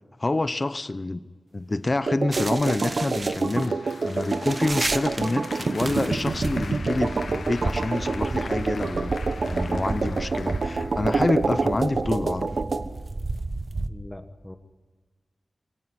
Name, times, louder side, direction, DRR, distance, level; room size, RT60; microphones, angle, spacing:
voice 1, 0.2-1.3 1.5-9.1 9.4-12.5, left 2 dB, 30° left, 0.9 m, -27 dB
sound 1, 2.1-12.9, right 4 dB, 65° right, 1.2 m, -27 dB
sound 2, 2.3-13.9, right 2 dB, 35° right, 1.1 m, -33 dB
Applause, 3.0-12.0, left 4 dB, 75° left, 1.2 m, -42 dB
voice 2, 13.9-14.6, left 1 dB, 10° left, 1.3 m, -41 dB
23.0 x 17.5 x 9.9 m
wide cardioid pair, 100°, 0 cm